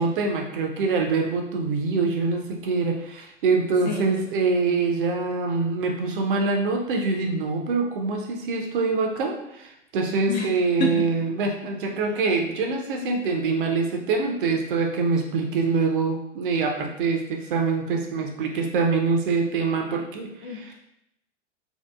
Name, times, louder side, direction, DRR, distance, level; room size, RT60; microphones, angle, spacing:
voice 1, 0.0-20.7, right 4 dB, 45° right, 2 dB, 0.5 m, -25 dB
voice 2, 3.9-4.2 10.3-10.5 10.8-11.0 20.4-20.7, left 3 dB, 40° left, 0 dB, 0.4 m, -28 dB
2.7 x 2.2 x 2.2 m, 0.80 s
figure-of-eight pair, 95°, 38 cm